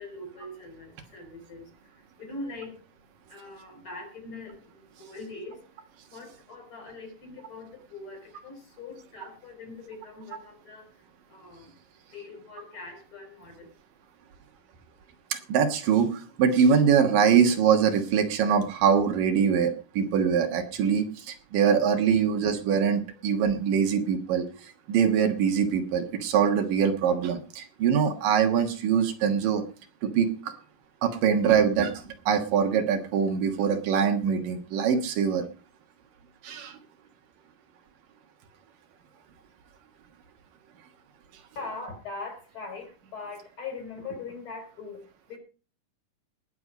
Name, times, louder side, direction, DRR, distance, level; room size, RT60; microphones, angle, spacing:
voice 1, 0.0-13.7 41.6-45.4, left 3 dB, 35° left, 4 dB, 5.4 m, -42 dB
voice 2, 15.3-29.6 30.0-30.5 31.0-35.4 36.4-36.8, right 7 dB, 80° right, 6 dB, 3.1 m, -23 dB
19.5 x 7.0 x 5.1 m, 0.37 s
omnidirectional pair, 3.8 m